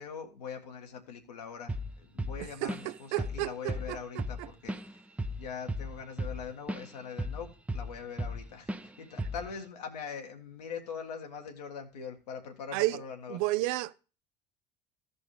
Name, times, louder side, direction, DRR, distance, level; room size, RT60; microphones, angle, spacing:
voice 1, 0.0-5.0 5.3-13.4, left 6 dB, 70° left, 1.6 m, -42 dB
Drum kit / Drum, 1.7-1.9 2.2-2.9 3.2-3.4 3.7-6.9 7.2-8.4 8.7-8.9 9.2-9.5, equal, 5° right, 0.7 m, -35 dB
voice 2, 2.4-4.5 9.2-9.3 12.7-13.0 13.3-13.9, right 18 dB, 55° right, 0.5 m, -33 dB
16.0 x 5.4 x 3.1 m
figure-of-eight pair, 60°, 21 cm